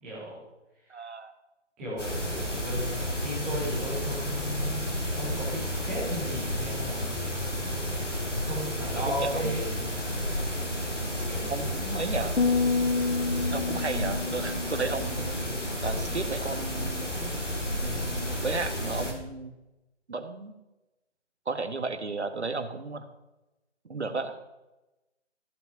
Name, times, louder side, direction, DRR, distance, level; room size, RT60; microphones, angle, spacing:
voice 1, 0.0-0.4 0.8-1.0 1.8-7.1 8.4-10.1 11.2-11.5, equal, ahead, -9 dB, 0.6 m, -36 dB
voice 2, 0.9-1.3 9.1-9.6 11.5-12.4 13.5-15.3 15.8-17.2 17.8-19.5 20.1-20.5 21.4-23.0 23.8-24.4, right 3 dB, 70° right, 9 dB, 1.4 m, -33 dB
sound 1, 2.0-19.1, equal, 85° left, 3.0 m, -31 dB
sound 2, 12.4-15.8, left 4 dB, 60° left, 1.1 m, -29 dB
14.0 x 5.7 x 5.5 m, 1.0 s
figure-of-eight pair, 145°, 35 cm